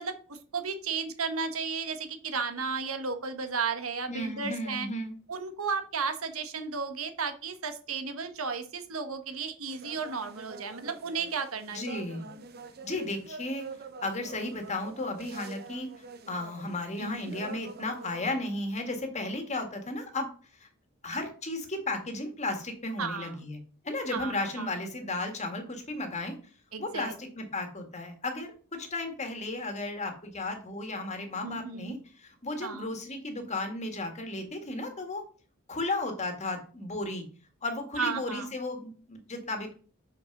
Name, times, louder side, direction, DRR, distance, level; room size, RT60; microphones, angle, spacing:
voice 1, 0.0-4.9 5.3-11.8 17.0-17.3 23.0-23.3 24.1-24.7 26.7-27.1 31.4-32.0 32.6-32.9 38.0-38.5, right 5 dB, 75° right, 8 dB, 1.3 m, -34 dB
voice 2, 4.1-5.1 11.7-12.2 12.8-13.7 14.0-15.9 16.3-20.3 20.6-20.7 21.0-26.3 26.8-35.2 35.7-37.2 37.6-39.7, left 2 dB, 30° left, 5 dB, 1.8 m, -34 dB
sound 1, 9.7-18.2, right 4 dB, 45° right, 0.9 m, -46 dB
6.2 x 6.0 x 5.9 m, 0.40 s
head